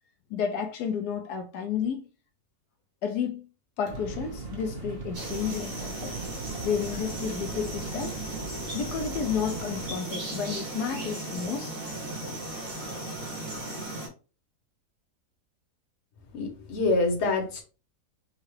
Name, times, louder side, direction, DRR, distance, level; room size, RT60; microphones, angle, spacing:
voice 1, 0.3-2.1 3.0-3.5 3.8-6.2 6.6-8.2 8.7-11.7, left 7 dB, 80° left, 1.2 m, -31 dB
sound 1, 3.9-10.0, right 3 dB, 45° right, 1.0 m, -39 dB
sound 2, 5.1-14.1, right 2 dB, 60° right, 2.6 m, -36 dB
voice 2, 16.3-17.6, left 3 dB, 50° left, 1.2 m, -26 dB
5.5 x 2.4 x 3.1 m
omnidirectional pair, 1.7 m